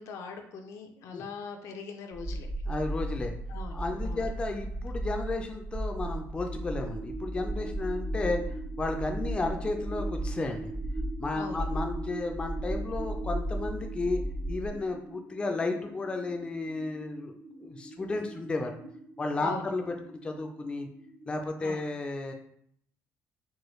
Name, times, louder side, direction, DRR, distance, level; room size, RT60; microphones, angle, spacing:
voice 1, 0.0-2.5 3.5-4.3 11.4-11.7 19.4-19.7 21.6-21.8, left 4 dB, 75° left, 4 dB, 0.5 m, -41 dB
sound 1, 2.1-14.7, right 1 dB, 55° right, 0.9 m, -35 dB
voice 2, 2.7-3.3 3.7-8.4 8.8-10.7 11.2-14.2 14.5-17.3 17.6-18.7 19.2-19.8 20.1-20.9 21.3-22.3, left 3 dB, 20° left, 4 dB, 0.4 m, -33 dB
sound 2, 6.5-21.5, right 2 dB, 20° right, 0.6 m, -44 dB
4.5 x 2.2 x 3.1 m, 0.66 s
cardioid pair, 125°, 5 cm